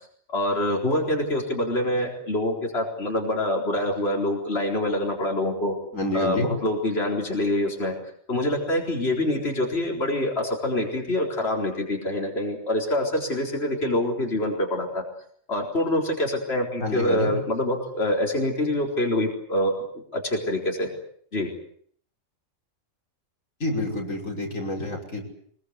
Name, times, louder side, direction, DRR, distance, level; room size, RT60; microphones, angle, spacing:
voice 1, 0.3-5.8 6.1-7.9 8.3-15.0 15.5-19.7 20.1-20.9 21.3-21.5, left 1 dB, 50° left, 0 dB, 4.6 m, -25 dB
voice 2, 5.9-6.5 16.8-17.3 23.6-25.2, left 1 dB, 90° left, 0 dB, 6.1 m, -28 dB
24.5 x 22.5 x 8.2 m, 0.62 s
omnidirectional pair, 1.3 m